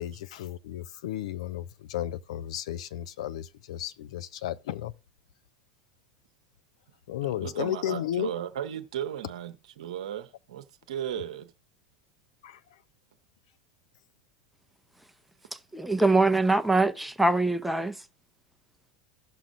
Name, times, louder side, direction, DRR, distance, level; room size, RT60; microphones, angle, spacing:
voice 1, 0.0-4.9 7.1-8.3 12.4-12.6, left 12 dB, 70° left, 0.4 m, -33 dB
voice 2, 7.2-11.5, right 10 dB, 70° right, 0.9 m, -36 dB
voice 3, 15.7-18.0, right 2 dB, ahead, 0.6 m, -23 dB
16.5 x 6.1 x 2.5 m
hypercardioid pair, 85°, 4 cm